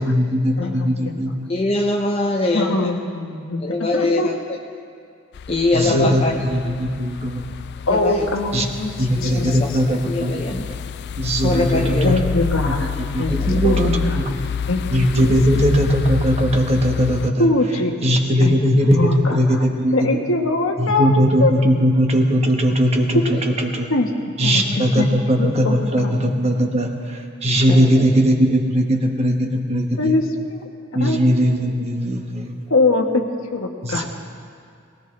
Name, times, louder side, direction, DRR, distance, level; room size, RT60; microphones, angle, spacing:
voice 1, 0.0-1.5 5.7-7.4 8.5-8.7 9.0-10.5 11.2-12.2 12.7-14.4 14.9-17.5 18.0-20.2 20.8-23.9 24.4-30.1 30.9-32.6 33.8-34.0, equal, 30° right, 2 dB, 1.3 m, -19 dB
voice 2, 0.6-1.2 2.5-4.3 5.9-6.1 7.9-8.9 9.2-9.5 12.0-14.3 14.7-14.9 15.2-15.6 17.4-18.0 18.4-18.5 18.9-19.6 19.9-21.5 23.1-23.2 23.9-24.1 24.4-24.6 25.0-26.1 30.0-30.6 31.0-31.2 32.7-34.0, left 2 dB, 80° left, 3 dB, 1.3 m, -22 dB
voice 3, 1.5-2.9 3.6-4.3 5.5-6.3 6.7-6.8 7.9-8.3 9.2-10.6 11.4-12.2 13.3-13.5 23.3-23.4 27.8-28.1, left 2 dB, 30° left, 0 dB, 0.7 m, -23 dB
sound 1, 5.3-17.3, left 6 dB, 55° left, 0.3 m, -28 dB
19.5 x 17.5 x 3.3 m, 2.4 s
head